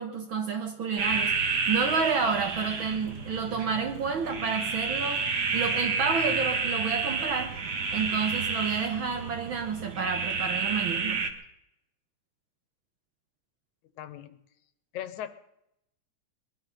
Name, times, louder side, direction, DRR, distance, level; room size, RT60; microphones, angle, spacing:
voice 1, 0.0-5.3 5.5-7.6 7.9-11.3, right 5 dB, 60° right, 6 dB, 1.4 m, -30 dB
sound 1, 1.0-11.3, right 4 dB, 45° right, 1.5 m, -30 dB
voice 2, 14.0-14.4 14.9-15.3, left 11 dB, 85° left, 12 dB, 2.3 m, -38 dB
21.0 x 12.0 x 5.7 m, 0.83 s
omnidirectional pair, 3.3 m